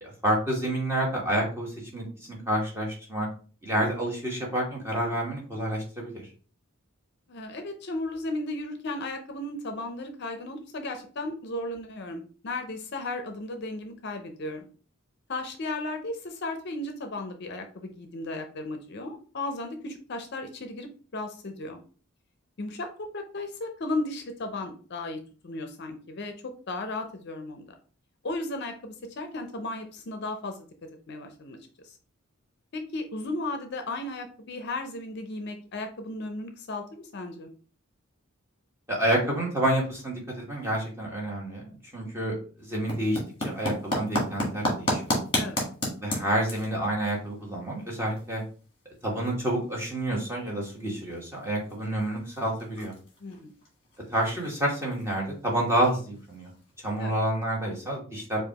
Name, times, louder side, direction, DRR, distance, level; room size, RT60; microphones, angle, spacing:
voice 1, 0.0-3.3 3.6-6.3 38.9-42.4 42.7-45.0 46.0-48.4 49.0-52.9 54.1-56.5 56.8-58.4, right 1 dB, 10° right, -3 dB, 1.2 m, -29 dB
voice 2, 7.3-14.7 15.3-21.8 22.6-26.3 26.7-27.7 28.2-30.7 31.1-31.6 31.8-31.9 32.7-37.5 45.4-45.6 53.2-53.5 57.0-57.1, left 2 dB, 50° left, 6 dB, 0.5 m, -35 dB
sound 1, 42.6-56.9, left 1 dB, 25° left, 1.4 m, -35 dB
4.8 x 2.4 x 2.9 m, 0.39 s
head